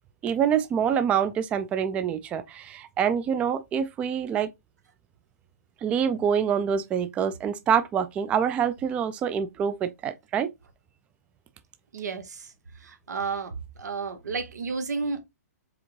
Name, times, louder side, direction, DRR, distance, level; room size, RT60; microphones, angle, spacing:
voice 1, 0.2-4.5 5.8-10.5, right 8 dB, 15° right, 0.3 m, -26 dB
voice 2, 11.9-12.4 12.8-13.5 13.8-15.2, right 4 dB, 85° right, 1.4 m, -31 dB
4.7 x 3.5 x 3.1 m
hypercardioid pair, 150°, 9 cm